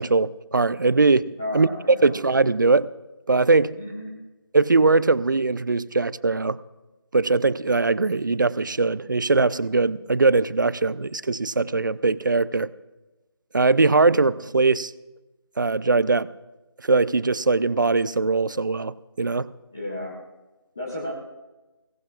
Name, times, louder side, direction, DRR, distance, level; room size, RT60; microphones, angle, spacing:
voice 1, 0.0-1.7 2.0-2.9 3.3-3.8 4.5-6.6 7.1-12.7 13.5-14.9 15.6-16.3 16.8-19.5, right 3 dB, 45° right, 18 dB, 0.4 m, -21 dB
voice 2, 1.4-2.1 3.8-4.1 19.7-20.2 20.8-21.1, left 1 dB, 5° left, -6 dB, 0.6 m, -33 dB
21.5 x 17.5 x 2.4 m, 1.1 s
figure-of-eight pair, 170°, 14 cm